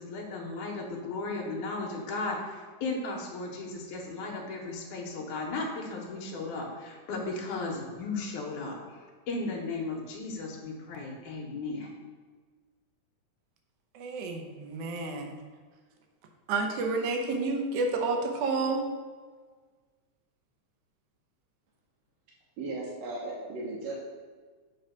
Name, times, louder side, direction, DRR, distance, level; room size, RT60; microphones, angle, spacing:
voice 1, 0.0-8.8 9.3-11.9, left 3 dB, 90° left, -1 dB, 2.5 m, -35 dB
voice 2, 13.9-15.4 16.5-18.8, right 3 dB, 85° right, 3 dB, 2.4 m, -30 dB
voice 3, 22.6-23.9, right 2 dB, 70° right, -5 dB, 2.0 m, -36 dB
7.7 x 3.9 x 5.6 m, 1.5 s
omnidirectional pair, 3.4 m